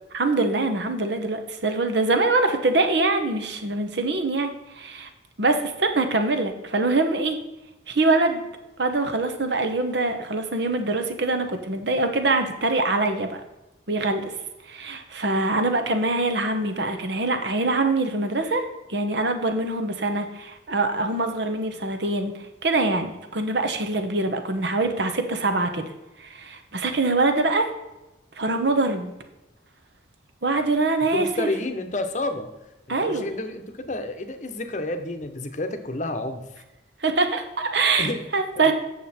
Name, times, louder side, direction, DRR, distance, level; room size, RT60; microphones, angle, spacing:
voice 1, 0.2-5.1 5.4-7.4 7.9-8.4 8.8-13.4 13.9-14.3 14.7-18.6 18.9-22.3 22.6-25.9 26.2-27.7 28.4-29.1 30.4-31.5 32.9-33.3 37.0-38.7, right 2 dB, 60° right, 7 dB, 1.0 m, -24 dB
voice 2, 31.1-32.5 33.0-36.4 38.0-38.3 38.6-38.7, left 2 dB, 40° left, 8 dB, 0.8 m, -30 dB
8.5 x 6.7 x 4.3 m, 1.0 s
head